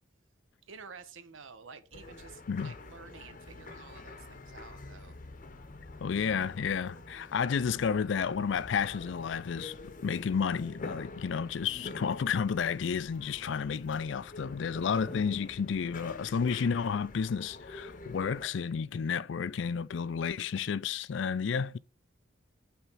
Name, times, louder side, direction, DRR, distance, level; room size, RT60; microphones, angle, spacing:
voice 1, 0.7-5.1, right 5 dB, 80° right, 0.9 m, -50 dB
sound 1, 1.9-18.5, left 3 dB, 40° left, 0.8 m, -47 dB
voice 2, 6.0-9.8 10.0-21.8, left 6 dB, 65° left, 0.4 m, -31 dB
5.7 x 4.4 x 5.5 m
head